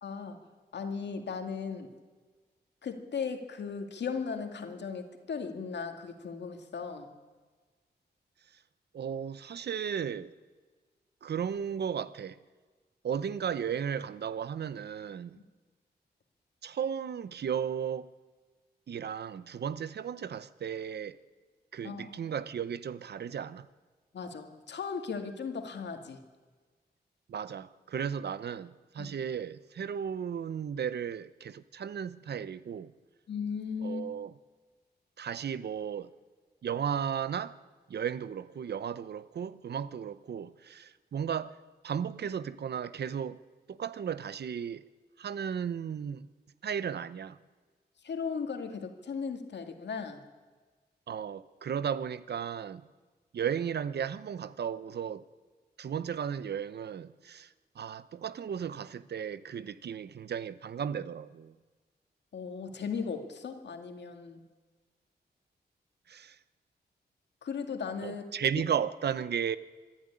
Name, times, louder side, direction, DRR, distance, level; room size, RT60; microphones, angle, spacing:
voice 1, 0.0-1.9 2.8-7.1 15.3-15.4 21.8-22.2 24.1-26.2 29.0-29.2 33.3-34.1 48.0-50.2 62.3-64.4 67.4-68.3, left 5 dB, 80° left, 2.2 m, -37 dB
voice 2, 8.9-10.3 11.2-12.4 13.0-15.4 16.6-18.1 18.9-21.2 21.7-23.7 27.3-32.9 33.8-34.3 35.2-36.1 36.6-37.6 37.9-41.6 41.8-43.4 43.7-44.8 45.2-46.3 46.6-47.4 51.1-52.9 53.3-55.2 55.8-61.5 66.1-66.4 68.0-69.6, right 8 dB, 70° right, 0.8 m, -35 dB
25.5 x 11.5 x 9.9 m
wide cardioid pair, 100°, 18 cm